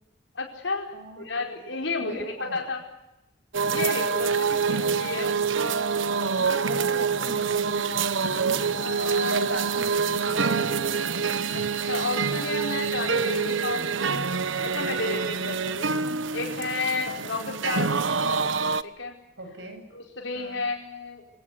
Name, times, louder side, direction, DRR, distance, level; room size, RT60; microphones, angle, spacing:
voice 1, 0.3-2.8 3.6-5.3 8.8-9.6 11.5-14.3 14.6-15.9 16.3-17.9 18.8-19.1 19.9-21.2, left 3 dB, 75° left, 2 dB, 4.8 m, -32 dB
voice 2, 0.9-1.3 2.0-2.6 4.3-5.0 6.3-8.9 9.2-11.0 17.2-17.4 19.4-19.8 20.4-20.6, right 2 dB, 70° right, 6 dB, 7.6 m, -38 dB
sound 1, 3.5-18.8, right 5 dB, 85° right, 1.1 m, -26 dB
25.5 x 18.5 x 9.5 m, 0.92 s
head